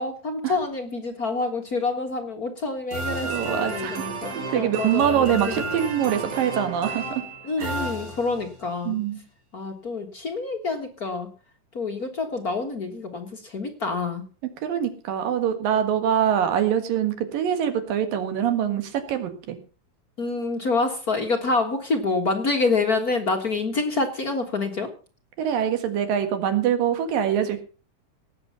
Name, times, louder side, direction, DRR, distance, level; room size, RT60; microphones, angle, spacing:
voice 1, 0.0-5.6 7.4-9.0 9.5-11.3 11.7-14.2 20.2-24.9, left 3 dB, 45° left, 4 dB, 1.2 m, -27 dB
sound 1, 2.9-8.6, right 3 dB, 60° right, 5.8 m, -32 dB
voice 2, 3.2-4.0 4.5-7.2 7.6-7.8 8.9-9.2 14.6-19.6 25.4-27.7, right 9 dB, 80° right, 8 dB, 3.4 m, -24 dB
18.0 x 8.3 x 5.6 m, 0.37 s
omnidirectional pair, 4.0 m